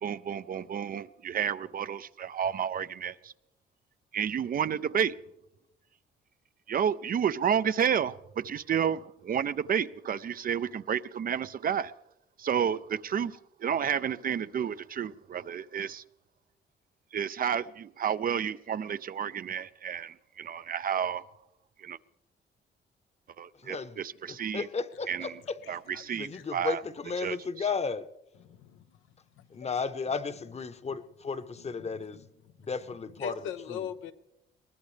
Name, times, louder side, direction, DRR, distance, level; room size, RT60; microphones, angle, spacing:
voice 1, 0.0-3.3 4.1-5.1 6.7-11.9 12.4-16.0 17.1-21.2 21.8-22.0 23.4-24.7 25.1-25.3 25.7-26.8 27.2-27.4, right 8 dB, 45° right, 0.5 m, -31 dB
voice 2, 23.6-25.6 26.1-28.1 29.5-32.2 32.6-33.4 33.7-33.8, left 5 dB, 35° left, 1.0 m, -34 dB
voice 3, 25.6-26.0 26.3-26.5 28.4-29.0 29.4-29.7 31.6-32.3 33.2-34.1, left 9 dB, 90° left, 1.0 m, -42 dB
22.0 x 19.0 x 3.3 m
cardioid pair, 90°, 20 cm